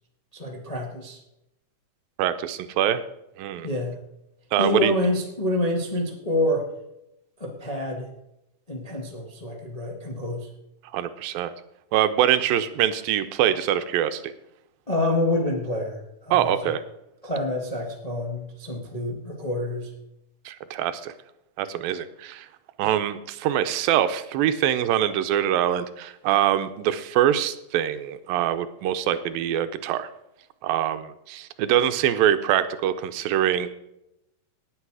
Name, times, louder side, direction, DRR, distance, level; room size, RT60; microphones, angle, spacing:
voice 1, 0.3-1.2 3.6-4.0 4.6-6.6 7.4-8.1 8.7-10.5 14.9-16.7 17.2-19.9, left 1 dB, 55° left, 0 dB, 0.4 m, -27 dB
voice 2, 2.2-3.0 3.4-3.7 4.5-4.9 10.9-11.5 11.9-14.3 16.3-16.8 20.5-21.1 21.6-22.5 22.8-30.1 30.6-33.7, right 11 dB, 80° right, 11 dB, 2.5 m, -24 dB
18.5 x 8.7 x 4.8 m, 0.86 s
omnidirectional pair, 4.1 m